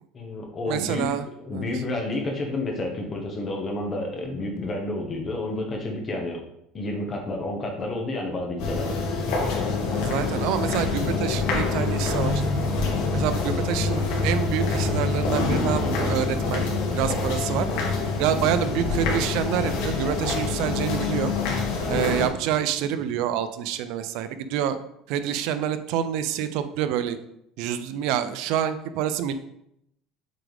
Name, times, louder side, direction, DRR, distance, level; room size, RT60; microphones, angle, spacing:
voice 1, 0.1-1.1 1.4-6.4 6.7-9.0, left 2 dB, 25° left, 1 dB, 1.5 m, -30 dB
voice 2, 0.7-1.2 1.5-1.6 9.9-12.3 13.1-16.7 17.0-17.7 18.2-21.3 21.9-24.8 25.1-27.2 27.6-29.3, right 10 dB, 70° right, 11 dB, 0.6 m, -27 dB
sound 1, 8.6-22.3, left 3 dB, 75° left, 2.2 m, -26 dB
sound 2, 9.0-23.4, left 6 dB, 45° left, 0.7 m, -39 dB
7.6 x 4.7 x 3.5 m, 0.78 s
cardioid pair, 140°, 0 cm